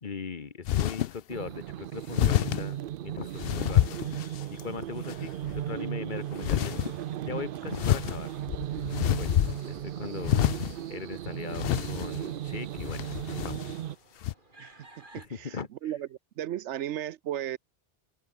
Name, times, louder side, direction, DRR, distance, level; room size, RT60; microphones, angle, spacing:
voice 1, 0.0-4.0 4.5-6.8 7.2-8.3 9.1-9.3 9.6-10.4 10.9-13.7 15.1-15.9, left 5 dB, 45° left, 1.2 m, -39 dB
sound 1, 0.6-1.2 2.1-2.7 3.4-4.6 5.1-5.6 6.4-6.9 7.7-9.8 10.2-10.8 11.5-12.2 12.8-13.8 14.2-14.3, left 12 dB, 65° left, 0.7 m, -27 dB
sound 2, 1.3-14.0, right 12 dB, 60° right, 0.6 m, -36 dB
sound 3, 6.4-15.3, right 2 dB, 45° right, 4.7 m, -59 dB
voice 2, 14.6-15.6 15.8-16.1 16.4-17.6, right 12 dB, 80° right, 0.9 m, -35 dB
open air
omnidirectional pair, 1.2 m